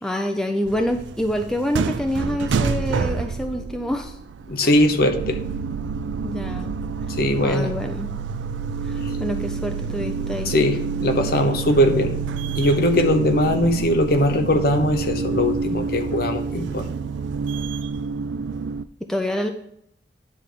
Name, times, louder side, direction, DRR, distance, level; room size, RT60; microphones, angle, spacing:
voice 1, 0.0-4.2 4.6-4.7 6.2-6.8 7.4-8.1 8.8-10.5 19.1-19.5, left 1 dB, 5° left, 4 dB, 0.5 m, -27 dB
sound 1, 0.7-18.8, right 5 dB, 75° right, 0.4 m, -28 dB
voice 2, 4.5-5.4 7.1-7.7 9.0-9.1 10.4-12.2 12.5-16.9, left 1 dB, 55° left, 6 dB, 0.9 m, -20 dB
9.8 x 3.4 x 6.7 m, 0.73 s
head